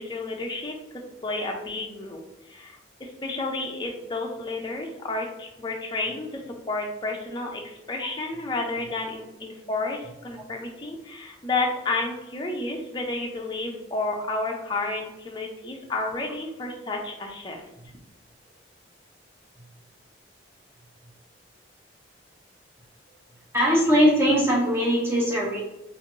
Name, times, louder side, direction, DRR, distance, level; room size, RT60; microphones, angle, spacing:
voice 1, 0.0-2.2 2.5-6.4 6.7-17.6, left 2 dB, 25° left, 1 dB, 0.4 m, -31 dB
voice 2, 23.5-25.6, equal, 15° right, -5 dB, 0.7 m, -20 dB
3.1 x 2.5 x 2.6 m, 0.94 s
head